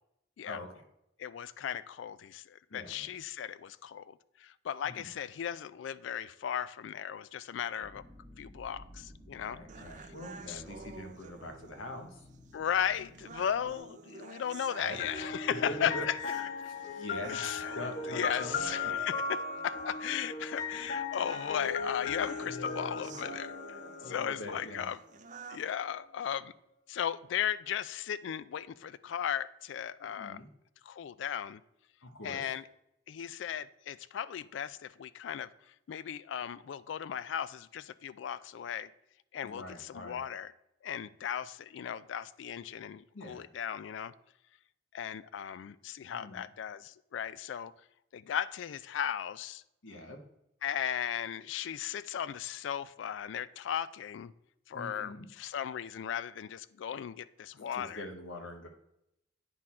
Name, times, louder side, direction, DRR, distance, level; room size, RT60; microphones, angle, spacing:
voice 1, 0.4-0.8 2.7-3.1 4.8-5.1 9.4-12.3 14.8-15.0 15.5-18.7 22.4-23.1 24.0-24.9 30.0-30.5 32.0-32.4 39.4-40.2 43.1-43.5 46.1-46.5 49.8-50.2 54.7-55.3 57.5-58.7, left 1 dB, 90° left, 1.1 m, -43 dB
voice 2, 1.2-8.0 8.4-9.6 10.5-10.6 12.5-16.2 17.3-17.8 18.1-23.6 24.1-25.0 25.5-26.5 26.9-30.4 30.8-31.6 32.2-32.6 33.1-35.5 35.9-38.9 39.3-40.5 40.8-44.1 44.9-47.7 48.1-49.6 50.6-54.3 54.7-58.1, left 9 dB, 75° left, 0.3 m, -36 dB
sound 1, 7.8-13.8, equal, 5° left, 1.5 m, -54 dB
sound 2, 9.7-25.7, right 4 dB, 40° right, 0.4 m, -50 dB
sound 3, 15.0-24.8, left 4 dB, 45° left, 0.8 m, -37 dB
9.1 x 4.2 x 4.2 m
head